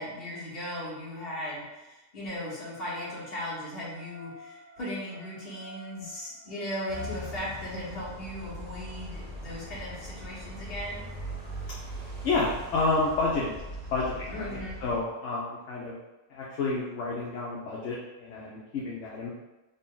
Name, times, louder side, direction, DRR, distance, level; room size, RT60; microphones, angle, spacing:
voice 1, 0.0-11.1 14.3-14.8, left 1 dB, 45° left, -6 dB, 1.3 m, -37 dB
sound 1, 2.7-7.2, left 2 dB, 65° right, 0.9 m, -48 dB
sound 2, 6.9-15.0, equal, 50° right, 0.4 m, -40 dB
voice 2, 12.2-13.6 13.9-16.0 16.3-19.4, left 3 dB, 65° left, -5 dB, 0.9 m, -30 dB
4.0 x 2.1 x 3.7 m, 1.0 s
omnidirectional pair, 1.5 m